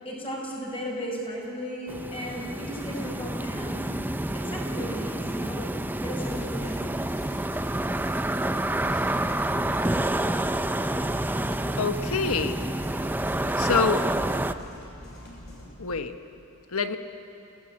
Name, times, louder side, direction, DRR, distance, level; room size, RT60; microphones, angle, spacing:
voice 1, 0.0-3.8 4.3-5.7 5.9-6.8, equal, 25° left, -2 dB, 5.7 m, -35 dB
sound 1, 1.9-14.5, right 1 dB, 10° right, 0.5 m, -28 dB
sound 2, 6.2-15.7, left 1 dB, 50° left, 6.6 m, -43 dB
voice 2, 11.8-12.6 13.6-14.0 15.8-16.1 16.7-17.0, left 5 dB, 90° left, 8 dB, 1.3 m, -26 dB
29.5 x 17.5 x 8.8 m, 2.8 s
head